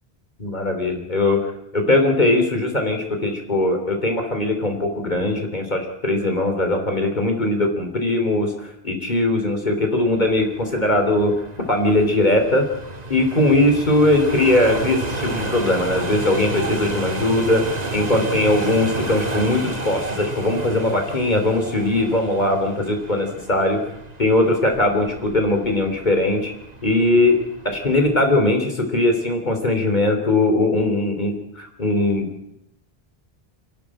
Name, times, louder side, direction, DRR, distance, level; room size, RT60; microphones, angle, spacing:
voice 1, 0.4-11.3 11.7-12.7 13.1-17.6 17.9-23.8 24.2-26.5 26.8-27.4 27.6-32.5, left 2 dB, 45° left, 4 dB, 3.7 m, -20 dB
sound 1, 10.0-28.3, right 2 dB, 40° right, 1.9 m, -32 dB
27.5 x 11.5 x 8.8 m, 0.82 s
omnidirectional pair, 1.0 m